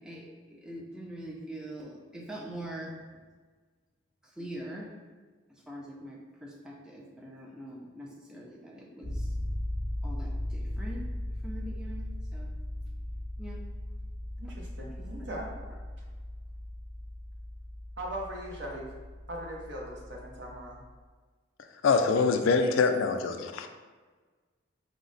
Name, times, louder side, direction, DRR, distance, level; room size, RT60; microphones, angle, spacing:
voice 1, 0.0-3.0 4.4-4.9 5.7-9.3 10.0-11.0 11.4-12.5 13.4-13.6 14.4-14.5 15.0-15.3, right 1 dB, 5° right, -2 dB, 0.4 m, -43 dB
sound 1, 9.0-20.9, left 1 dB, 35° right, 1.3 m, -38 dB
voice 2, 14.4-15.5 18.0-18.9 19.3-20.8, right 1 dB, 60° right, -2 dB, 0.8 m, -39 dB
voice 3, 21.8-23.7, left 4 dB, 85° left, 7 dB, 0.3 m, -24 dB
4.8 x 2.1 x 3.9 m, 1.4 s
head